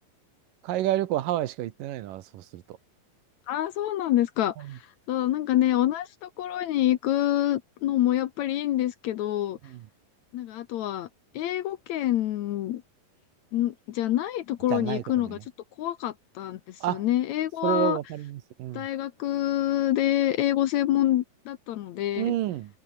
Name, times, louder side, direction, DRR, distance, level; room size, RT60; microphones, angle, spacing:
voice 1, 0.7-2.2 14.7-15.0 16.8-17.0 17.6-18.3 18.6-18.8 22.2-22.7, right 13 dB, 70° right, 2.7 m, -28 dB
voice 2, 3.5-4.8 5.1-9.6 10.3-11.1 11.3-12.8 13.5-15.4 15.8-18.0 18.7-22.3, left 13 dB, 70° left, 1.8 m, -26 dB
omnidirectional pair, 4.1 m